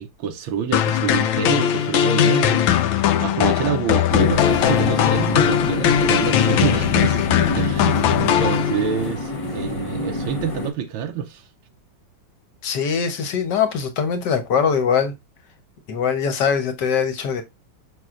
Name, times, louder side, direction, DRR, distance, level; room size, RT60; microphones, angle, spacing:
voice 1, 0.0-2.7 2.9-11.5, right 7 dB, 90° right, 1.6 m, -27 dB
sound 1, 0.7-9.1, left 10 dB, 80° left, 1.4 m, -19 dB
sound 2, 4.1-10.7, left 1 dB, 25° left, 0.7 m, -27 dB
voice 2, 12.6-15.1 15.9-17.4, left 6 dB, 60° left, 1.6 m, -22 dB
6.3 x 6.1 x 2.5 m
omnidirectional pair, 2.1 m